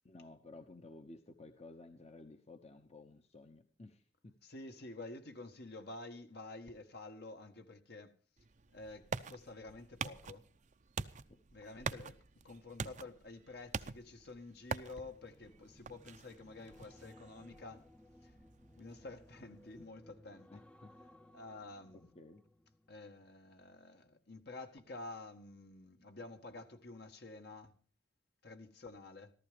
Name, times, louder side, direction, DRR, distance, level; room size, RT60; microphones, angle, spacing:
voice 1, 0.0-4.4 11.3-11.4 20.5-20.9 22.1-22.4, left 2 dB, 35° left, 1.0 m, -54 dB
voice 2, 4.4-8.1 8.7-10.5 11.5-17.9 18.2-18.3 18.8-20.5 21.3-22.1 22.9-27.7 28.4-29.3, left 2 dB, 60° left, 1.7 m, -50 dB
sound 1, 8.4-19.9, right 5 dB, 40° right, 0.6 m, -46 dB
sound 2, 14.5-23.9 24.2-24.5, left 1 dB, 5° left, 0.7 m, -61 dB
14.5 x 14.0 x 5.1 m
head